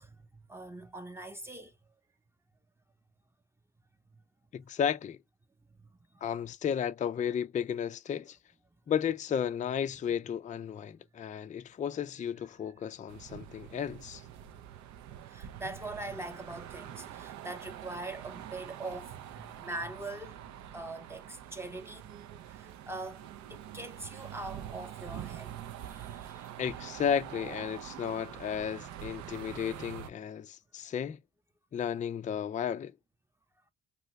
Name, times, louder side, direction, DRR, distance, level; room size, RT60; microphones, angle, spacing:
voice 1, 0.0-1.8 4.1-4.2 5.8-5.9 6.1-6.2 15.3-20.4 20.7-22.1 22.5-26.5, right 2 dB, 10° right, 0.7 m, -43 dB
voice 2, 4.5-5.2 6.2-8.4 8.9-14.2 26.6-31.2 31.7-32.9, left 8 dB, 25° left, 0.3 m, -33 dB
sound 1, 13.1-30.1, right 11 dB, 70° right, 0.5 m, -45 dB
2.8 x 2.6 x 3.1 m
cardioid pair, 90°, 30 cm